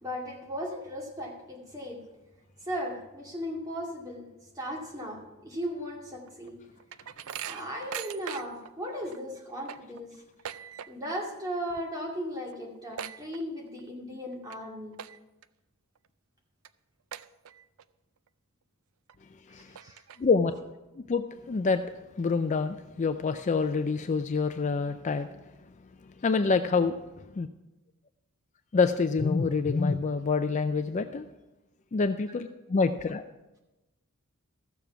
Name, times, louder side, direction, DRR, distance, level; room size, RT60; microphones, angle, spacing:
voice 1, 0.0-2.0 2.6-4.3 4.6-6.6 7.5-10.1 10.9-15.0 19.5-20.3, equal, 15° right, -2 dB, 2.3 m, -37 dB
sound 1, 6.3-8.7 9.1-9.2 9.5-11.2 11.5-11.8 12.1-12.2 12.5-13.9 14.3-14.6 14.9-15.5 16.0-16.1 16.6-16.7 17.1-17.8 18.3-18.4 19.1-19.2 19.6-20.5, right 9 dB, 70° right, 0.4 m, -41 dB
voice 2, 20.2-20.5 21.1-21.8 22.2-25.3 26.2-27.0 27.4-27.5 28.7-31.3 31.9-33.2, left 4 dB, 35° left, 9 dB, 0.4 m, -26 dB
14.0 x 7.1 x 5.9 m, 1.0 s
head